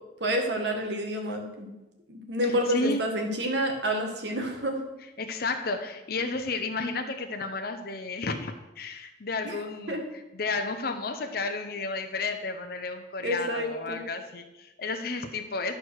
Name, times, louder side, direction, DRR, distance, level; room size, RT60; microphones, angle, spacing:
voice 1, 0.2-1.7 2.1-4.8 9.4-9.5 9.9-10.0 13.2-14.0, equal, 70° right, 2 dB, 1.8 m, -29 dB
voice 2, 2.4-3.0 5.2-15.7, left 3 dB, 55° left, 5 dB, 0.7 m, -32 dB
11.5 x 4.6 x 6.4 m, 1.0 s
head